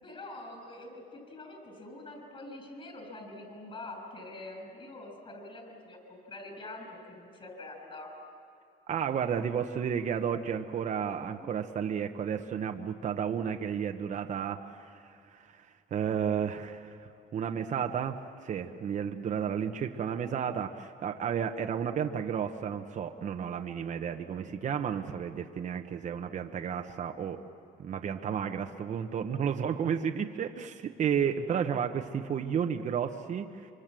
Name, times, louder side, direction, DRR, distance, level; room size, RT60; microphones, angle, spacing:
voice 1, 0.0-8.1 11.4-11.5, left 2 dB, 35° left, 4 dB, 6.7 m, -45 dB
voice 2, 8.9-15.6 15.9-27.4 27.8-33.7, right 7 dB, 45° right, 5 dB, 1.1 m, -32 dB
25.5 x 25.0 x 7.6 m, 2.4 s
cardioid pair, 110°, 17 cm